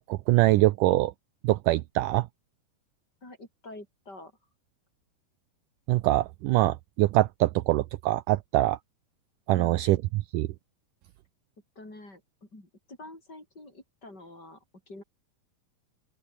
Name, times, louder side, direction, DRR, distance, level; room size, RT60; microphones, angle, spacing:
voice 1, 0.1-1.1 1.4-2.3 5.9-8.8 9.5-10.0 10.3-10.5, right 17 dB, 80° right, 2.0 m, -23 dB
voice 2, 3.2-4.3 9.5-9.8 11.8-15.0, left 2 dB, 25° left, 8.0 m, -47 dB
open air
omnidirectional pair, 4.3 m